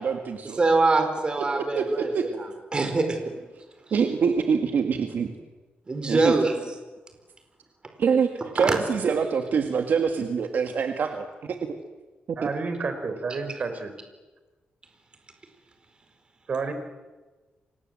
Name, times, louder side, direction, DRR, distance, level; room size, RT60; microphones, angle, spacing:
voice 1, 0.0-0.6 1.4-2.3 3.9-5.3 6.1-6.4 8.0-8.3 8.5-11.8 12.3-12.5, right 6 dB, 60° right, 4 dB, 2.0 m, -25 dB
voice 2, 0.6-2.1 2.7-3.3 5.9-6.5 8.6-8.8, right 3 dB, 25° right, 6 dB, 4.6 m, -23 dB
voice 3, 12.4-13.9 16.5-16.7, right 4 dB, 45° right, 8 dB, 4.2 m, -30 dB
30.0 x 25.0 x 7.9 m, 1.2 s
wide cardioid pair, 150°, 4 cm